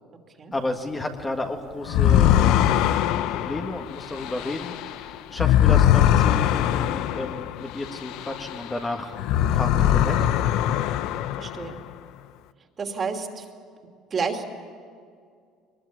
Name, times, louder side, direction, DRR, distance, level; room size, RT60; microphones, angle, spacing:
voice 1, 0.5-2.7 3.1-10.3, left 2 dB, 20° left, 3 dB, 1.7 m, -32 dB
sound 1, 1.9-8.8 9.1-11.8, left 11 dB, 75° left, 0.7 m, -22 dB
voice 2, 11.4-11.8 12.8-13.4 14.1-14.5, right 5 dB, 35° right, 4 dB, 2.7 m, -29 dB
22.0 x 20.5 x 8.6 m, 2.2 s
cardioid pair, 115°, 0 cm